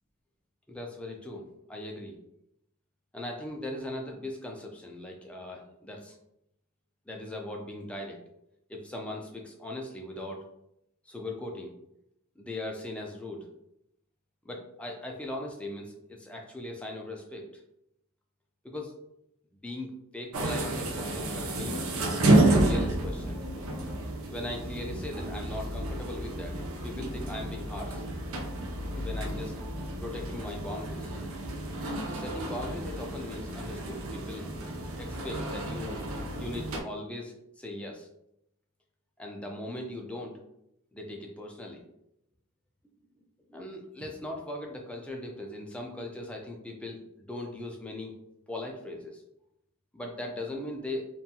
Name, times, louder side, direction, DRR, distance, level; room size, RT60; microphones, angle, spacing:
voice 1, 0.7-2.2 3.1-6.2 7.1-8.2 8.7-10.4 11.1-11.7 12.4-13.5 14.4-17.6 18.6-19.0 19.6-21.9 22.5-23.4 24.3-26.6 26.8-28.0 29.0-29.6 30.0-31.1 32.1-34.5 35.0-36.1 36.4-38.1 39.2-40.4 40.9-41.8 43.5-48.1 48.5-49.2 49.9-51.1, left 1 dB, 5° left, 0 dB, 0.4 m, -39 dB
sound 1, 20.3-36.8, right 1 dB, 70° right, 0.5 m, -30 dB
2.6 x 2.2 x 2.7 m, 0.78 s
head